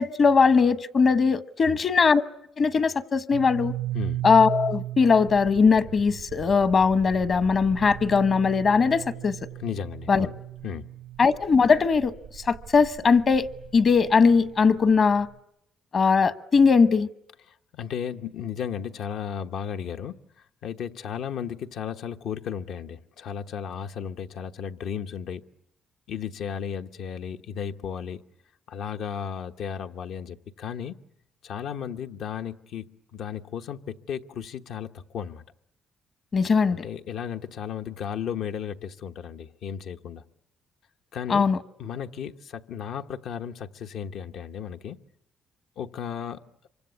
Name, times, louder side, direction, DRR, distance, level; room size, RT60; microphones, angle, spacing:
voice 1, 0.0-2.2 2.6-3.7 4.2-9.3 10.1-10.3 11.2-12.1 12.5-13.5 13.7-15.3 15.9-17.1 36.3-36.8 41.3-41.6, left 5 dB, 50° left, 1.1 m, -20 dB
sound 1, 3.3-15.3, right 14 dB, 85° right, 1.0 m, -37 dB
voice 2, 9.6-10.4 10.6-10.9 17.5-20.2 20.6-25.4 26.1-28.2 28.7-31.0 31.4-32.8 33.1-35.4 36.8-40.2 41.1-41.5 41.8-45.0 45.8-46.4, left 8 dB, 75° left, 1.1 m, -34 dB
26.5 x 24.5 x 8.3 m
cardioid pair, 90°, 0 cm